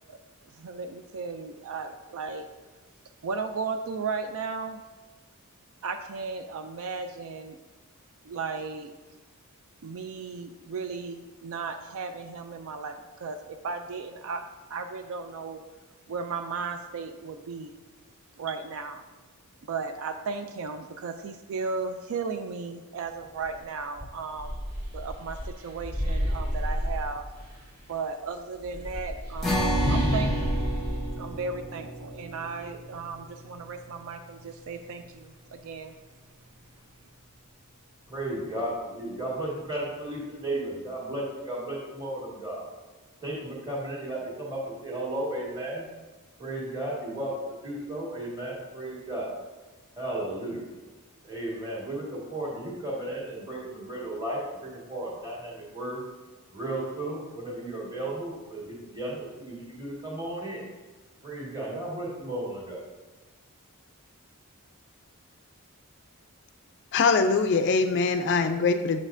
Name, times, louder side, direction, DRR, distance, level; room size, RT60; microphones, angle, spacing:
voice 1, 0.5-2.5 3.2-4.8 5.8-7.6 8.2-8.9 9.8-14.4 14.7-15.6 16.1-17.7 18.4-19.0 19.6-24.6 24.9-27.3 27.9-30.5 31.2-35.9, right 4 dB, 65° right, 7 dB, 0.4 m, -35 dB
sound 1, 23.4-23.6 24.0-27.6 28.6-32.2, equal, 45° right, 2.0 m, -30 dB
sound 2, 29.4-36.1, right 1 dB, ahead, 1.1 m, -34 dB
voice 2, 38.1-42.7 43.2-45.8 46.4-49.3 50.0-50.7 51.2-56.0 56.5-60.7 61.2-62.8, right 1 dB, 20° right, -5 dB, 1.7 m, -34 dB
voice 3, 66.9-69.0, left 4 dB, 50° left, 8 dB, 0.3 m, -23 dB
7.2 x 6.1 x 2.6 m, 1.2 s
head